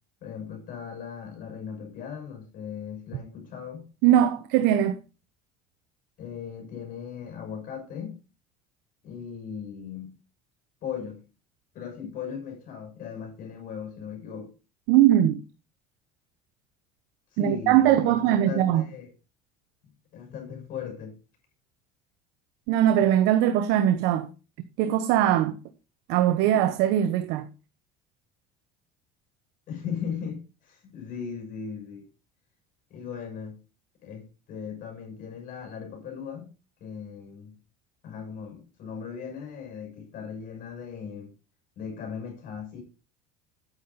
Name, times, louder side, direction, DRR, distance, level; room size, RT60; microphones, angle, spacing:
voice 1, 0.2-3.9 6.2-8.2 9.0-10.1 10.8-11.2 11.7-14.5 17.3-19.1 20.1-21.1 29.7-32.1 32.9-33.6 34.0-36.5 36.8-37.5 38.0-41.3 41.8-42.8, left 7 dB, 50° left, 6.5 m, -37 dB
voice 2, 4.0-5.0 14.9-15.4 17.4-18.9 22.7-24.3 24.8-25.6 26.1-27.5, right 11 dB, 75° right, 1.0 m, -21 dB
9.7 x 9.2 x 4.2 m
cardioid pair, 120°, 18 cm